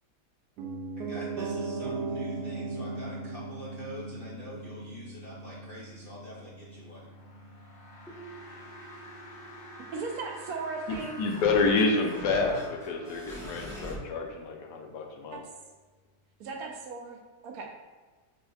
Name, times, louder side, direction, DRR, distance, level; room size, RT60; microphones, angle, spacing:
Piano, 0.6-10.6 10.9-11.0, right 3 dB, 85° right, 1.2 m, -39 dB
voice 1, 1.0-7.1, left 1 dB, 65° left, -6 dB, 0.5 m, -45 dB
sound 1, 6.8-13.8, left 1 dB, 40° left, 0.9 m, -49 dB
sound 2, 8.1-14.0, equal, 5° left, 0.6 m, -43 dB
voice 2, 9.9-11.2 15.3-15.4 16.4-17.7, right 4 dB, 70° right, 1 dB, 1.0 m, -37 dB
voice 3, 11.2-15.4, left 3 dB, 85° left, 2 dB, 1.2 m, -28 dB
5.1 x 3.3 x 2.3 m, 1.3 s
omnidirectional pair, 1.7 m